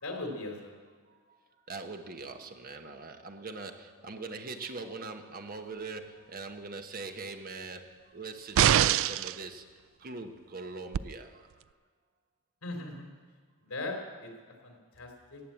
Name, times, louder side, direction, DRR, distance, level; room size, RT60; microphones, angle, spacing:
voice 1, 0.0-0.8 12.6-13.1 13.6-14.3 14.6-15.4, left 2 dB, 80° left, 2 dB, 3.4 m, -39 dB
voice 2, 1.1-1.4 1.7-9.6 10.0-11.5, right 3 dB, 45° right, 6 dB, 1.1 m, -42 dB
sound 1, 8.6-9.4 10.9-11.0, right 11 dB, 65° right, 0.3 m, -23 dB
15.0 x 8.7 x 8.6 m, 1.5 s
head